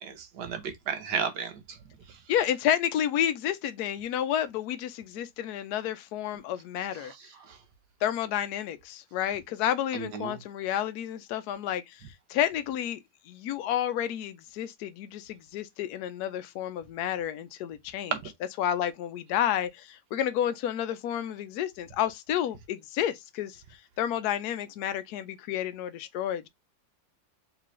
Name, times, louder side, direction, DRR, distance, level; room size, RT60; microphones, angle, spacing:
voice 1, 0.0-1.8 7.0-7.1 7.5-7.6 9.9-10.4 18.1-18.3, right 7 dB, 65° right, 1.4 m, -33 dB
voice 2, 2.3-7.1 8.0-12.0 12.3-13.0 13.3-18.1 18.6-23.6 24.0-26.5, left 10 dB, 70° left, 1.0 m, -30 dB
3.8 x 3.3 x 3.1 m
omnidirectional pair, 2.0 m